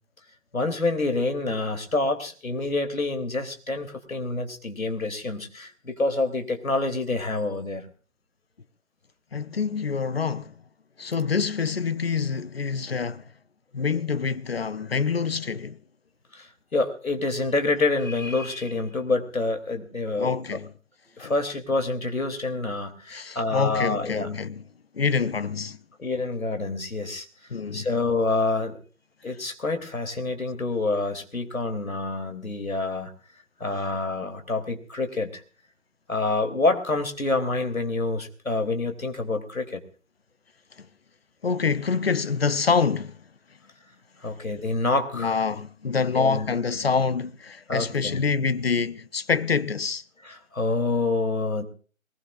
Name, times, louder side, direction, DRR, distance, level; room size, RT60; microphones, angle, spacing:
voice 1, 0.5-7.9 16.3-20.3 21.2-24.3 26.0-27.2 27.7-28.8 29.2-33.1 33.6-35.3 36.1-39.8 44.2-45.3 46.1-46.6 47.7-48.2 50.2-51.6, left 3 dB, 75° left, 3.1 m, -27 dB
voice 2, 9.3-10.5 11.0-13.2 13.7-15.8 20.2-20.7 21.2-21.3 23.1-24.6 24.9-25.8 27.5-27.9 33.7-33.8 40.8-40.9 41.4-43.2 45.1-50.0, left 5 dB, 45° left, 0.7 m, -26 dB
22.5 x 20.5 x 2.5 m
figure-of-eight pair, 145°, 42 cm